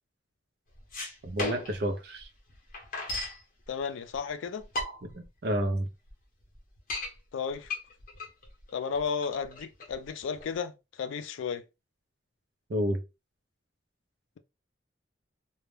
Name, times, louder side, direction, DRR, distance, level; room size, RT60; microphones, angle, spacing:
sound 1, 0.7-1.9 2.2-2.3 2.5-3.4 4.2-4.3 4.6-5.2 5.7-5.8 6.1-6.2 6.6-7.1 7.6-10.5, left 2 dB, 45° left, 0.8 m, -35 dB
voice 1, 1.2-2.3 5.0-5.9 12.7-13.0, equal, 55° right, 0.5 m, -30 dB
voice 2, 3.7-4.7 7.3-7.7 8.7-10.7 11.0-11.6, left 6 dB, 85° left, 0.4 m, -33 dB
2.2 x 2.0 x 3.1 m
head